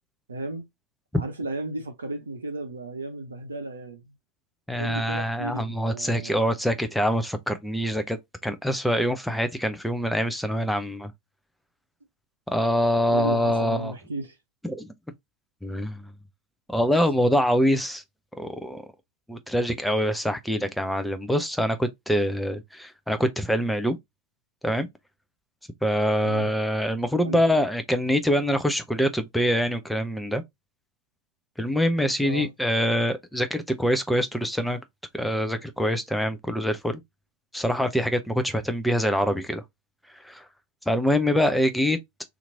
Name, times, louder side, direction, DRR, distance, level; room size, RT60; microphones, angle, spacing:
voice 1, 0.3-0.7 1.1-4.1 4.8-6.4 13.0-14.4 26.2-26.5 27.2-27.4 32.2-32.5, right 2 dB, 75° right, 0.6 m, -34 dB
voice 2, 4.7-8.2 8.4-11.1 12.5-13.9 14.6-14.9 15.6-16.1 16.7-18.0 18.3-18.8 19.3-24.0 24.6-24.9 25.8-30.4 31.6-34.8 35.1-37.0 37.5-39.6 40.2-40.4 40.9-42.0, equal, ahead, 0.5 m, -25 dB
2.9 x 2.5 x 3.8 m
figure-of-eight pair, 90°, 0 cm